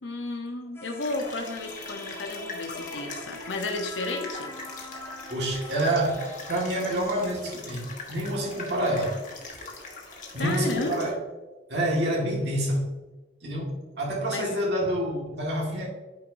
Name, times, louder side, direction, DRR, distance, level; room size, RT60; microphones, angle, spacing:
voice 1, 0.0-4.5 10.4-11.1 14.3-14.5, left 2 dB, 85° left, 3 dB, 0.9 m, -32 dB
sound 1, 0.8-7.4, left 2 dB, 15° left, 0.5 m, -42 dB
sound 2, 1.0-11.1, left 3 dB, 45° left, 1.3 m, -42 dB
voice 2, 5.3-9.2 10.3-11.2 11.7-12.9 13.4-15.9, right 1 dB, 65° right, -2 dB, 1.8 m, -27 dB
9.0 x 4.9 x 2.7 m, 1.2 s
head